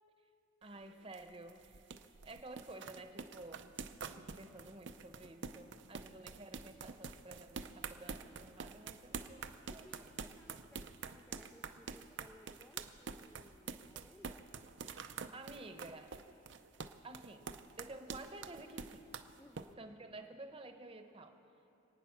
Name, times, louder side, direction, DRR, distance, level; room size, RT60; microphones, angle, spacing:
voice 1, 0.6-1.8 2.2-3.7 4.1-10.2 14.9-16.1 17.0-17.5 17.8-19.1 19.8-21.4, right 2 dB, 30° right, 7 dB, 0.9 m, -52 dB
sound 1, 0.6-19.7, right 5 dB, 65° right, 0.6 m, -47 dB
voice 2, 9.7-14.5 19.4-19.9, left 1 dB, 5° left, 5 dB, 0.3 m, -61 dB
25.5 x 9.2 x 6.0 m, 2.9 s
head